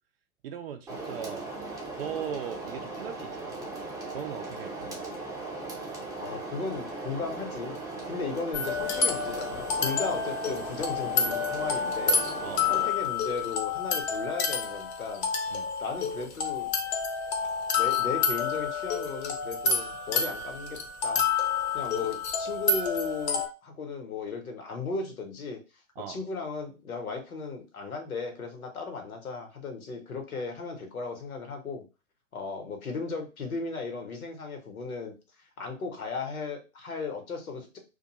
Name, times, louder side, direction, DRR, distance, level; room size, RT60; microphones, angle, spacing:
voice 1, 0.4-1.5 1.9-3.7 4.1-4.9 12.4-12.7 15.5-15.7 26.0-26.2, right 8 dB, 45° right, 7 dB, 0.4 m, -39 dB
sound 1, 0.9-12.9, right 3 dB, 10° right, 0.7 m, -38 dB
voice 2, 6.2-7.8 8.1-12.2 12.7-15.3 15.8-16.7 17.4-21.3 21.7-25.6 26.0-31.8 32.3-35.1 35.6-37.8, left 4 dB, 80° left, 4 dB, 1.0 m, -36 dB
sound 2, 8.5-23.5, left 5 dB, 50° left, 0.7 m, -29 dB
2.5 x 2.2 x 2.8 m, 0.30 s
figure-of-eight pair, 110°, 42 cm